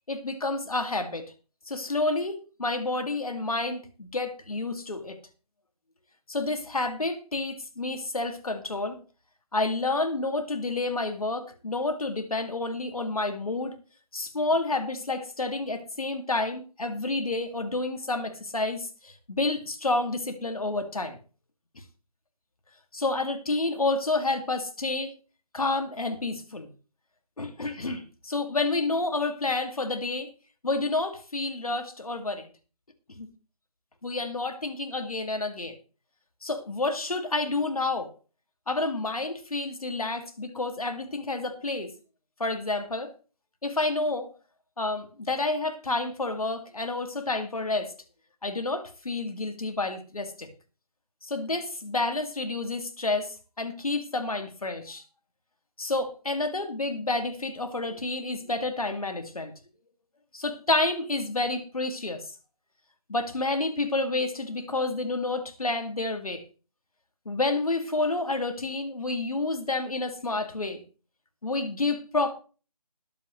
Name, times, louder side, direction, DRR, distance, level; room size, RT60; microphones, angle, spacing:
voice 1, 0.1-1.3 1.7-5.2 6.3-9.0 9.5-13.8 14.1-21.2 22.9-25.1 25.5-26.7 27.4-30.3 30.6-32.5 33.2-33.3 34.0-35.8 36.4-38.1 38.7-41.9 42.4-43.1 43.6-44.3 44.8-47.9 48.4-50.5 51.2-55.0 55.8-59.5 60.3-62.2 63.1-66.4 67.3-70.8 71.4-72.3, left 2 dB, 65° left, 2.3 m, -29 dB
20.5 x 8.0 x 3.2 m
figure-of-eight pair, 160°, 20 cm